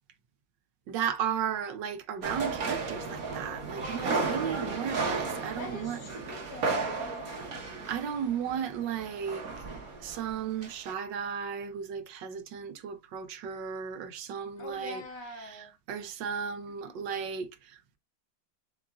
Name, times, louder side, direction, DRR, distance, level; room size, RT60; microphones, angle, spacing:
voice 1, 0.9-6.0 7.9-9.5 10.0-15.0 15.5-15.6 15.9-18.0, right 7 dB, 75° right, 1.4 m, -35 dB
sound 1, 2.2-10.4 10.6-10.9, right 4 dB, 55° right, 1.5 m, -34 dB
voice 2, 5.6-7.9 14.6-15.7 16.8-17.1, left 1 dB, 65° left, 2.0 m, -44 dB
6.9 x 2.5 x 2.4 m
omnidirectional pair, 2.0 m